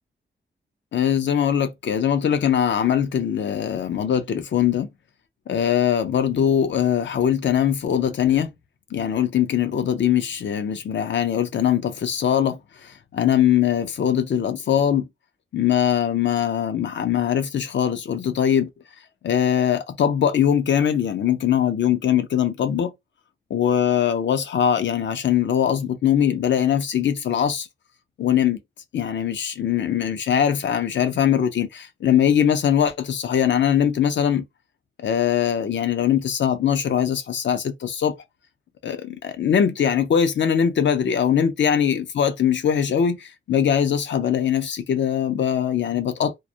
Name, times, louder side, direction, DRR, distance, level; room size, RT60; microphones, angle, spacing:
voice 1, 0.9-4.9 5.5-8.5 8.9-15.1 15.5-18.7 19.2-22.9 23.5-27.7 28.2-28.6 28.9-34.5 35.0-38.2 38.8-46.4, left 9 dB, 65° left, 0.5 m, -21 dB
2.2 x 2.0 x 2.7 m
cardioid pair, 70°, 20 cm